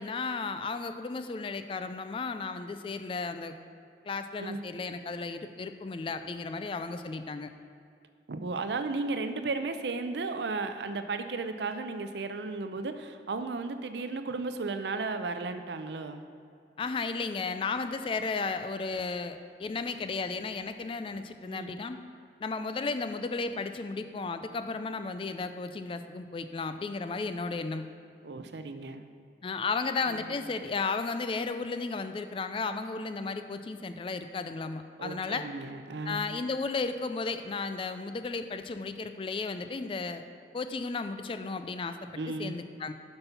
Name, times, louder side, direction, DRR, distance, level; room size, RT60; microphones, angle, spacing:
voice 1, 0.0-3.5 4.0-7.5 16.8-22.0 22.4-27.9 29.4-35.5 36.1-40.2 40.5-42.0 42.3-42.9, left 4 dB, 30° left, 9 dB, 0.3 m, -34 dB
voice 2, 8.3-16.2 21.5-21.8 28.2-29.1 30.1-30.2 35.0-36.4 42.1-42.6, right 3 dB, 70° right, 8 dB, 0.5 m, -34 dB
8.0 x 5.5 x 5.7 m, 2.4 s
head